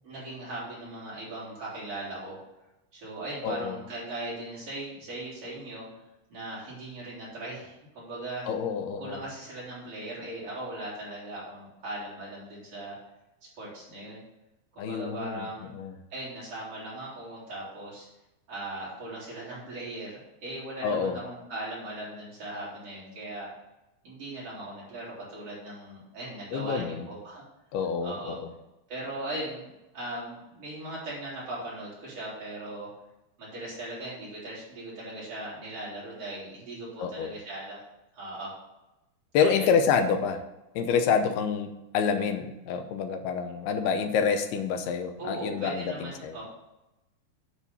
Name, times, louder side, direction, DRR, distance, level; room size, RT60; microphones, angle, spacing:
voice 1, 0.0-2.4 2.9-5.9 6.3-8.5 9.0-13.0 13.6-14.2 14.7-15.7 16.1-18.1 18.5-23.5 24.0-27.4 28.0-28.4 28.9-32.9 33.4-37.8 38.1-38.5 39.4-39.7 45.2-46.4, right 1 dB, 40° right, -7 dB, 4.7 m, -39 dB
voice 2, 3.4-3.8 8.5-9.2 14.8-15.5 15.7-15.9 20.8-21.2 26.5-27.1 27.7-28.5 37.0-37.3 39.3-40.4 40.8-46.4, left 6 dB, 85° left, 7 dB, 2.8 m, -27 dB
9.7 x 4.9 x 6.9 m, 0.95 s
omnidirectional pair, 4.6 m